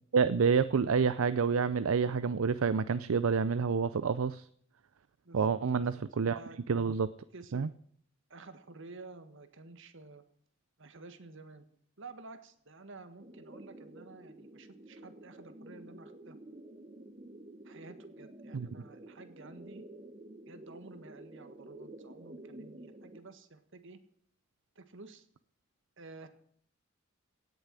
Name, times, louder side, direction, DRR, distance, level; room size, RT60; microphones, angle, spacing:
voice 1, 0.1-4.4 5.3-6.4 6.7-7.1 7.5-7.7 18.5-18.7, right 5 dB, 80° right, 15 dB, 0.5 m, -28 dB
voice 2, 5.2-6.0 6.3-6.6 7.3-7.7 8.3-10.2 10.8-11.6 12.0-16.4 17.6-19.8 20.5-24.0 24.7-25.3 26.0-26.3, right 3 dB, 65° right, 10 dB, 1.7 m, -51 dB
sound 1, 13.2-23.2, right 1 dB, 30° right, 1.5 m, -50 dB
17.5 x 6.9 x 9.7 m, 0.62 s
head